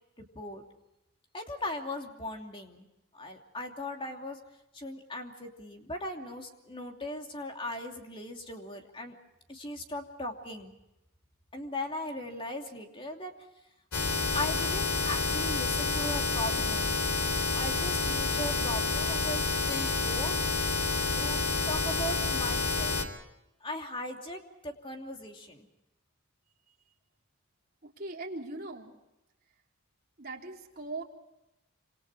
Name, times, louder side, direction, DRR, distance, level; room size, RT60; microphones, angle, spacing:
voice 1, 0.2-0.6 1.3-2.9 3.1-4.4 4.7-9.2 9.5-10.7 11.5-13.3 14.3-17.0 17.5-20.8 21.1-23.0 23.6-25.7, left 1 dB, 25° left, 3 dB, 2.8 m, -38 dB
sound 1, 13.9-23.0, left 3 dB, 80° left, 3.7 m, -29 dB
voice 2, 27.8-28.9 30.2-31.0, right 2 dB, 45° right, 0 dB, 3.5 m, -40 dB
27.5 x 26.5 x 4.8 m, 0.90 s
head